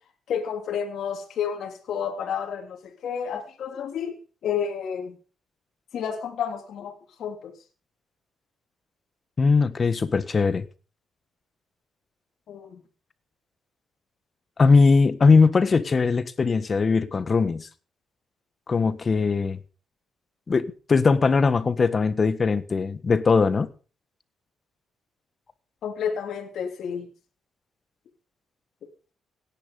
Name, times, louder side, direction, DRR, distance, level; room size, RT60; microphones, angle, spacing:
voice 1, 0.3-4.2 4.4-5.2 5.9-6.9 7.2-7.5 12.5-12.8 25.8-27.1, left 7 dB, 65° left, 3.1 m, -30 dB
voice 2, 9.4-10.6 14.6-17.7 18.7-19.6 20.5-23.7, left 4 dB, 35° left, 1.5 m, -20 dB
17.5 x 10.5 x 5.3 m
cardioid pair, 90°, 0 cm